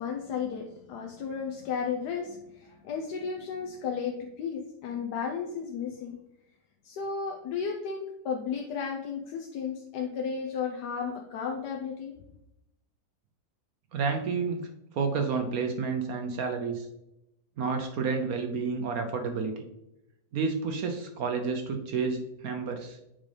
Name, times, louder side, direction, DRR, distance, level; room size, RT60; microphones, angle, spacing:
voice 1, 0.0-6.2 6.8-12.1, left 6 dB, 75° left, 1 dB, 1.3 m, -34 dB
voice 2, 13.9-14.7 14.9-16.9 17.6-19.6 20.3-23.0, right 5 dB, 65° right, 5 dB, 1.0 m, -30 dB
7.4 x 5.2 x 3.2 m, 0.86 s
omnidirectional pair, 1.8 m